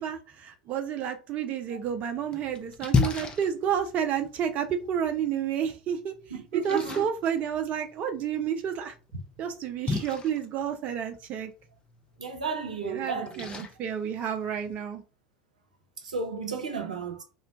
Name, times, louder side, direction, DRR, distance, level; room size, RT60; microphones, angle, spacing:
voice 1, 0.0-6.1 6.5-8.9 9.4-11.5 12.9-15.0, right 8 dB, 40° right, 0.4 m, -30 dB
Splash splatter, 1.8-14.8, left 4 dB, 25° left, 0.6 m, -36 dB
voice 2, 6.3-7.0 12.2-13.5 16.0-17.2, right 5 dB, 80° right, 0.6 m, -33 dB
2.2 x 2.1 x 3.8 m
figure-of-eight pair, 75°, 4 cm